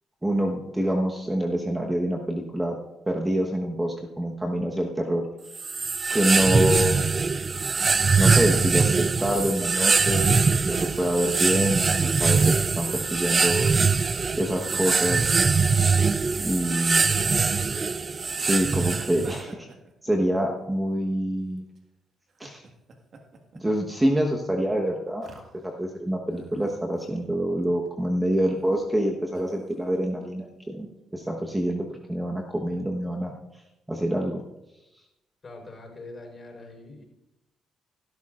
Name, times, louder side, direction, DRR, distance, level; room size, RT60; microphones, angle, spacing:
voice 1, 0.2-2.7 3.1-5.2 6.1-7.2 8.2-13.7 14.4-15.3 16.4-17.1 18.4-19.7 20.0-21.7 22.4-22.6 23.5-25.3 25.6-30.9 31.1-33.3 33.9-34.4, equal, 10° right, 1 dB, 1.2 m, -26 dB
sound 1, 5.5-19.4, right 4 dB, 35° right, 0.3 m, -22 dB
sound 2, 19.2-20.9 21.6-21.8 22.3-25.9 26.3-27.3 27.6-27.9 28.5-28.9 29.3-30.0, right 4 dB, 55° right, 1.7 m, -49 dB
voice 2, 35.4-37.0, left 2 dB, 35° left, 1 dB, 4.6 m, -43 dB
15.5 x 13.0 x 2.5 m, 0.93 s
cardioid pair, 90°, 0 cm